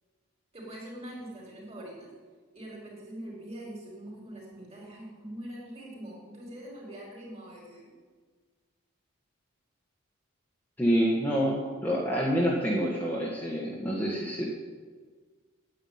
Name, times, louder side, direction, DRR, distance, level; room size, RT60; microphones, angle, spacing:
voice 1, 0.5-2.1 2.5-7.9, right 1 dB, 30° right, -2 dB, 4.5 m, -43 dB
voice 2, 10.8-14.5, equal, 10° left, -4 dB, 1.5 m, -27 dB
9.9 x 9.3 x 9.4 m, 1.5 s
head